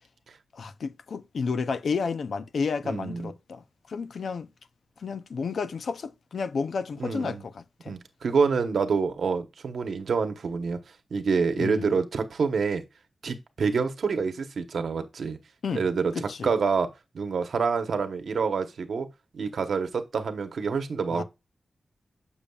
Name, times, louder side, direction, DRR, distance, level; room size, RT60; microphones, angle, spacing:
voice 1, 0.5-4.5 5.0-8.0 11.6-11.9 15.6-15.9 16.1-16.5 21.1-21.2, left 5 dB, 80° left, 0.5 m, -31 dB
voice 2, 2.8-3.3 7.0-7.4 7.9-10.8 11.1-12.8 13.2-15.4 15.7-16.9 17.1-19.1 19.3-21.2, right 5 dB, 85° right, 1.0 m, -27 dB
7.1 x 7.0 x 2.3 m
wide cardioid pair, 105°, 0 cm